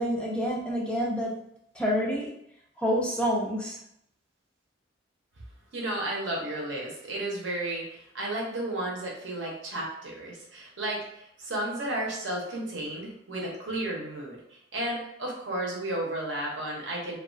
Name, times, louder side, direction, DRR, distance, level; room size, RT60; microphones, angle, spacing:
voice 1, 0.0-1.3 1.7-2.3 2.8-3.8, equal, 5° left, -3 dB, 0.3 m, -28 dB
voice 2, 5.7-17.2, right 1 dB, 70° right, -2 dB, 0.7 m, -33 dB
2.3 x 2.2 x 2.4 m, 0.75 s
head